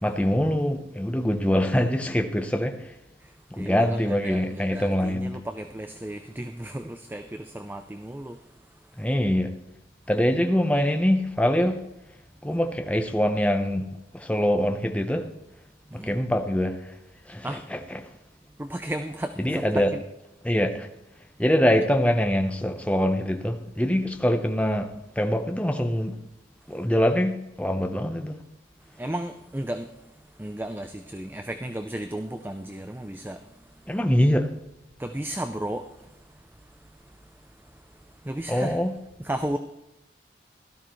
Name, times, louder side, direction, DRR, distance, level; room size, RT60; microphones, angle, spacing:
voice 1, 0.0-2.9 3.5-5.3 9.0-9.5 10.1-11.8 12.4-13.9 14.1-15.3 15.9-16.9 17.3-18.1 19.4-19.9 20.4-20.9 21.4-24.9 25.2-26.2 26.7-28.4 33.9-34.5 38.5-38.9, equal, 5° left, 0.8 m, -24 dB
voice 2, 3.6-8.4 15.9-16.2 17.4-17.6 18.6-20.0 29.0-29.9 30.4-33.4 35.0-35.9 38.2-38.8 39.2-39.6, right 1 dB, 10° right, 0.4 m, -34 dB
16.5 x 12.5 x 3.1 m
head